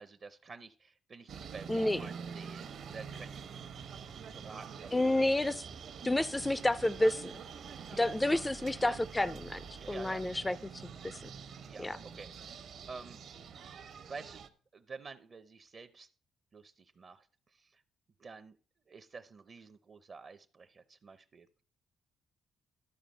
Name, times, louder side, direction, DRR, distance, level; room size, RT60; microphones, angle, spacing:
voice 1, 0.0-3.7 4.3-5.6 7.9-8.1 8.8-9.0 9.8-10.2 10.5-10.6 11.6-13.2 14.1-14.5 14.7-16.1 16.5-17.8 18.2-18.6 18.9-21.6, right 4 dB, 45° right, 0.6 m, -50 dB
sound 1, 1.3-14.5, right 6 dB, 70° right, 1.0 m, -46 dB
voice 2, 1.7-2.0 4.9-5.5 6.0-7.3 7.9-9.6 9.9-10.6 10.8-11.2 11.8-12.0, left 1 dB, 15° left, 0.4 m, -30 dB
13.0 x 5.1 x 5.2 m
cardioid pair, 90°, 0 cm